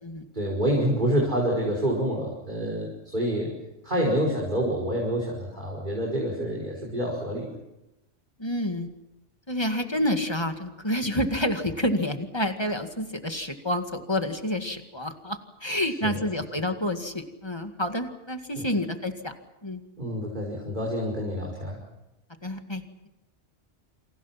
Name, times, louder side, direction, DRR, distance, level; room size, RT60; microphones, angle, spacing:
voice 1, 0.3-3.5 3.8-7.5 11.1-11.2 16.0-16.3 18.6-18.7 20.0-21.8, equal, 40° right, -3 dB, 5.6 m, -27 dB
voice 2, 8.4-8.9 9.5-19.3 19.6-19.8 22.4-22.8, left 1 dB, 20° left, 6 dB, 2.1 m, -29 dB
29.0 x 27.0 x 6.0 m, 0.96 s
omnidirectional pair, 1.2 m